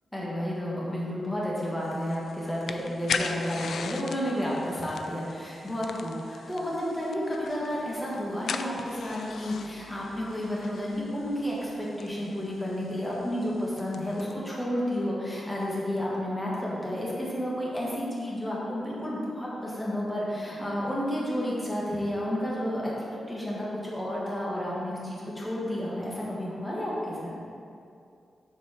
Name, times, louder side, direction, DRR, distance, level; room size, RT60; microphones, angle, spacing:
voice 1, 0.1-22.9 23.3-27.3, equal, 10° left, -6 dB, 1.5 m, -31 dB
sound 1, 1.8-14.3, left 5 dB, 75° left, 0.3 m, -40 dB
7.0 x 4.5 x 5.7 m, 2.5 s
wide cardioid pair, 130°, 0 cm